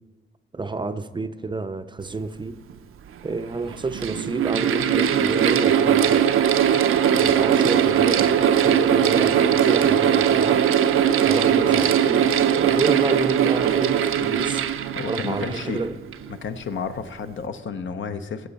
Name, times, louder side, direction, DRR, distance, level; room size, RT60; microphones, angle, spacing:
voice 1, 0.5-2.6 3.2-6.3 6.7-10.6 11.2-14.6 15.1-15.9, right 3 dB, 20° right, 10 dB, 0.4 m, -28 dB
Mechanical fan, 2.7-2.8 3.6-16.3, right 9 dB, 85° right, 0.5 m, -20 dB
voice 2, 14.9-15.8 16.3-18.5, left 6 dB, 65° left, 9 dB, 0.8 m, -31 dB
16.0 x 7.1 x 4.1 m, 1.3 s
wide cardioid pair, 115°, 21 cm